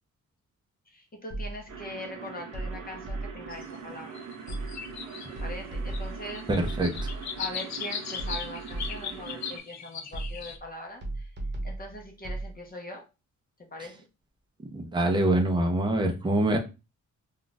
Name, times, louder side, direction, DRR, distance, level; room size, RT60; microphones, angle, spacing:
voice 1, 0.9-4.2 5.4-6.5 7.4-11.3 11.6-13.1 13.7-14.0, left 1 dB, 30° left, 1 dB, 0.7 m, -41 dB
sound 1, 1.3-1.8 2.5-3.6 4.5-5.0 5.4-7.5 8.2-9.2 10.1-10.6 11.0-12.5, right 2 dB, 35° right, 1.0 m, -36 dB
sound 2, 1.7-9.6, right 6 dB, 75° right, 0.7 m, -43 dB
sound 3, 3.5-3.6 4.1-5.6 5.9-6.0 6.4-10.6, left 7 dB, 60° left, 0.5 m, -38 dB
voice 2, 6.5-6.9 14.7-16.6, right 1 dB, 15° right, 3 dB, 0.6 m, -24 dB
2.4 x 2.3 x 3.8 m, 0.28 s
cardioid pair, 120°, 32 cm